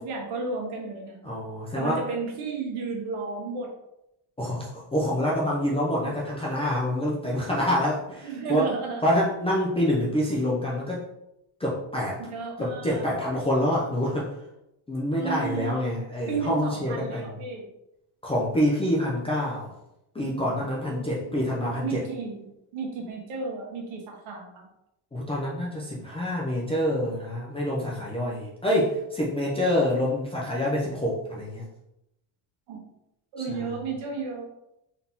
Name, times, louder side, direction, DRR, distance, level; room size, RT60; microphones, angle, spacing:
voice 1, 0.0-1.3 1.8-3.7 8.2-9.0 12.3-13.0 15.2-15.8 16.3-17.7 20.9-21.3 21.8-22.4 22.7-24.6 32.7-32.8 33.3-34.5, right 4 dB, 75° right, -1 dB, 1.3 m, -33 dB
voice 2, 1.2-2.0 4.4-8.6 9.0-11.0 11.6-12.2 12.6-14.3 14.9-17.4 18.2-19.7 20.1-22.0 25.1-31.6 33.5-33.7, left 1 dB, 15° left, -6 dB, 0.4 m, -26 dB
4.0 x 2.8 x 3.5 m, 0.85 s
cardioid pair, 175°, 49 cm